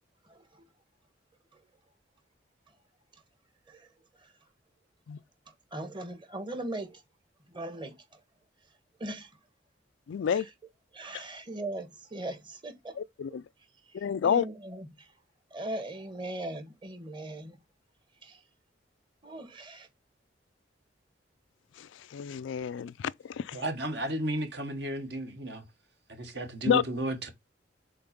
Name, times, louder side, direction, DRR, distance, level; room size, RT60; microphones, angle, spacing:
voice 1, 0.2-0.7 1.5-1.6 3.7-3.9 4.2-4.3 5.5-7.0 7.5-8.2 9.0-9.3 10.3-10.5 10.9-13.0 13.3-13.4 13.9-15.1 15.5-17.6 18.2-18.4 19.2-19.9, right 1 dB, 25° right, 1.2 m, -40 dB
voice 2, 10.1-10.5 13.0-13.4 13.9-14.5 21.8-23.6 26.7-26.8, left 7 dB, 80° left, 0.3 m, -29 dB
voice 3, 23.5-25.6 26.1-27.3, right 1 dB, 60° right, 1.5 m, -33 dB
5.7 x 3.9 x 5.1 m
head